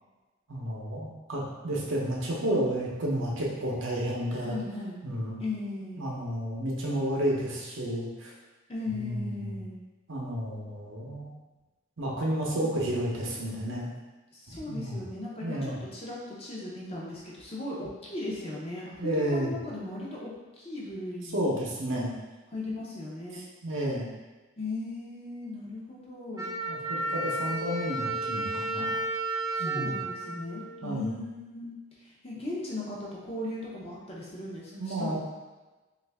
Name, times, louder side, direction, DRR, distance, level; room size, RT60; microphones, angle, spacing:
voice 1, 0.5-4.5 5.0-5.4 6.0-8.3 8.9-9.6 10.1-11.3 12.0-13.9 14.7-15.0 15.4-15.8 19.0-19.5 21.3-22.1 23.3-24.1 26.7-28.8 29.6-30.0 30.8-31.2 34.7-35.2, right 1 dB, 60° right, -4 dB, 0.7 m, -31 dB
voice 2, 4.4-5.0 5.4-6.0 8.7-9.8 12.5-12.7 14.3-20.3 20.6-21.5 22.5-23.4 24.6-26.5 28.8-28.9 29.5-31.7 32.0-35.2, left 2 dB, 30° left, -5 dB, 0.6 m, -37 dB
Wind instrument woodwind instrument, 26.4-31.2, right 2 dB, 15° right, 0.4 m, -33 dB
3.2 x 2.4 x 3.4 m, 1.2 s
head